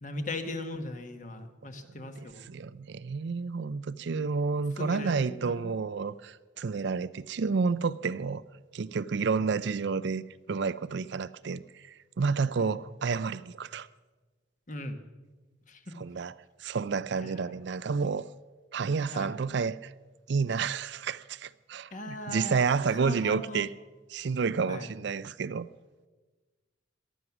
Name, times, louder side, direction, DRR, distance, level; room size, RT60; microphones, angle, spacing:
voice 1, 0.0-2.4 4.8-5.7 9.4-9.5 12.6-12.8 14.7-15.0 15.7-15.9 17.2-17.3 19.1-19.3 21.9-22.6 23.0-23.7 24.7-24.9, left 1 dB, 40° left, 1.4 m, -38 dB
voice 2, 2.5-8.4 8.7-13.9 16.0-16.3 16.6-18.3 18.7-19.9 20.3-23.7 24.1-25.7, right 5 dB, 60° right, 0.4 m, -30 dB
19.0 x 12.5 x 6.0 m
head